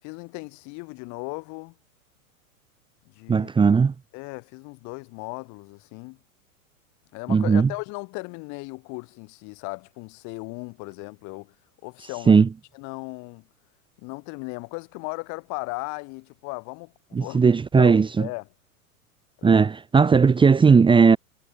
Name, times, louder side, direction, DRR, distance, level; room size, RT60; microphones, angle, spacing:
voice 1, 0.0-1.8 3.1-3.5 4.1-6.2 7.1-11.5 11.8-12.5 12.7-13.5 14.0-18.4 19.4-19.6, left 29 dB, 40° left, 7.2 m, -37 dB
voice 2, 3.3-3.9 7.3-7.7 12.3-12.5 17.1-18.3 19.4-21.2, right 5 dB, 10° right, 1.5 m, -17 dB
figure-of-eight pair, 95°, 42 cm